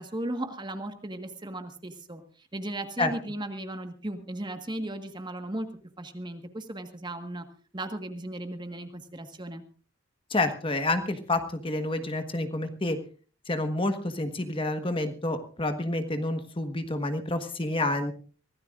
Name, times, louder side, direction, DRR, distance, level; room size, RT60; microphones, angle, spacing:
voice 1, 0.0-5.7 6.0-7.4 7.7-9.6, right 1 dB, 20° right, 7 dB, 1.5 m, -36 dB
voice 2, 10.3-13.0 13.5-18.1, left 2 dB, 25° left, 8 dB, 1.4 m, -29 dB
24.5 x 17.0 x 2.5 m, 0.38 s
head